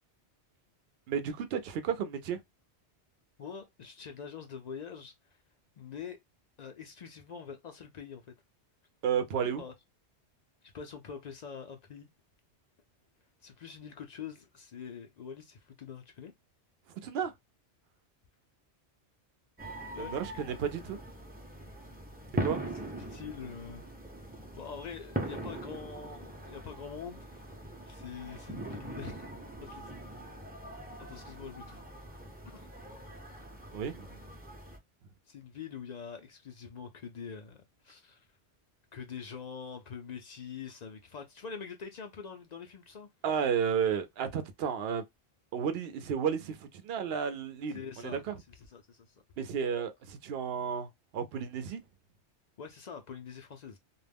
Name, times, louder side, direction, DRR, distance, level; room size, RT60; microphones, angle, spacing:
voice 1, 1.1-2.4 9.0-9.6 17.0-17.3 20.0-21.0 22.4-22.6 33.7-34.2 43.2-45.0 45.5-48.3 49.4-51.8, right 7 dB, 65° right, 0.8 m, -32 dB
voice 2, 3.4-5.1 5.8-6.2 6.6-8.3 9.6-9.7 10.6-12.1 13.4-16.3 19.9-20.1 23.0-23.8 24.5-29.3 29.6-29.9 31.0-31.8 32.4-32.7 35.3-38.3 38.9-43.1 47.7-49.1 52.6-53.8, left 6 dB, 60° left, 0.4 m, -45 dB
sound 1, 19.6-34.8, right 1 dB, 10° right, 0.5 m, -41 dB
2.3 x 2.1 x 3.3 m
omnidirectional pair, 1.2 m